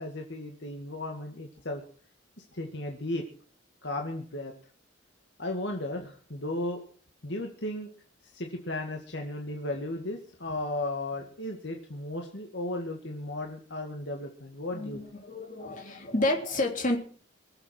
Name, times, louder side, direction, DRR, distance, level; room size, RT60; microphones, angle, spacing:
voice 1, 0.0-1.8 2.5-3.2 3.8-4.5 5.4-6.8 7.2-7.9 8.3-15.0, left 1 dB, 60° left, 2 dB, 2.0 m, -35 dB
voice 2, 14.7-17.0, left 2 dB, 40° left, 3 dB, 3.2 m, -30 dB
23.5 x 8.0 x 6.0 m, 0.44 s
head